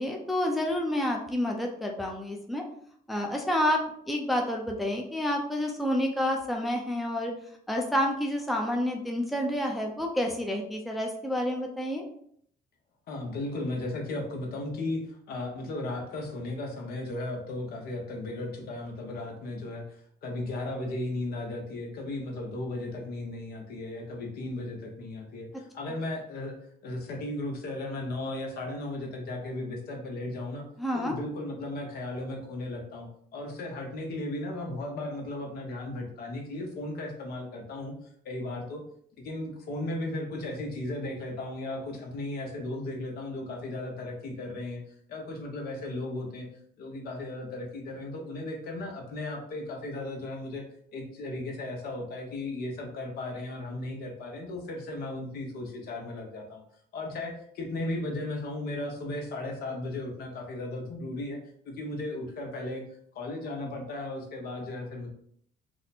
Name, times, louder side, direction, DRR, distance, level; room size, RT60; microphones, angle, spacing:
voice 1, 0.0-2.6 3.1-7.3 7.7-12.0 30.8-31.1, left 1 dB, ahead, 1 dB, 0.5 m, -29 dB
voice 2, 13.1-26.6 26.8-30.6 30.9-37.9 38.2-38.8 39.2-46.5 46.8-50.6 50.9-56.6 56.9-61.4 61.6-62.8 63.1-65.1, left 2 dB, 65° left, 1 dB, 0.9 m, -36 dB
2.8 x 2.1 x 4.1 m, 0.65 s
cardioid pair, 110°, 17 cm